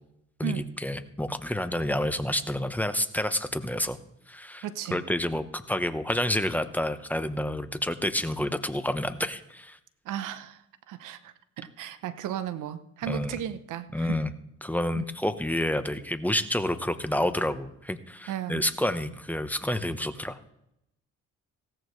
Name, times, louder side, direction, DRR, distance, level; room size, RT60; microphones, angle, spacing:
voice 1, 0.4-4.0 4.3-4.7 4.9-9.8 13.1-13.4 13.9-14.3 14.6-20.4, left 1 dB, 5° left, 9 dB, 1.0 m, -29 dB
voice 2, 4.6-5.0 10.0-14.2 14.9-15.0 18.3-18.6, right 10 dB, 85° right, 13 dB, 0.9 m, -35 dB
17.5 x 13.5 x 3.2 m, 0.80 s
cardioid pair, 90°, 30 cm